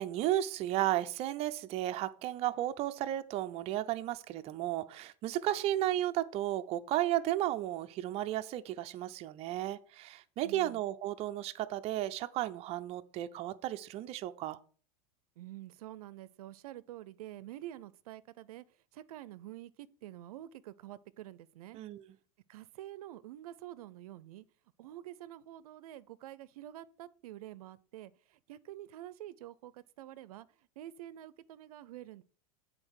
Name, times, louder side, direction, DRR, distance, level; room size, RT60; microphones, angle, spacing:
voice 1, 0.0-14.6 21.7-22.0, right 13 dB, 35° right, 0.5 m, -34 dB
voice 2, 10.4-10.8 15.4-18.6 18.9-21.8 22.5-24.4 24.8-32.2, right 13 dB, 90° right, 0.5 m, -48 dB
7.8 x 4.0 x 6.3 m
supercardioid pair, 145°, 18 cm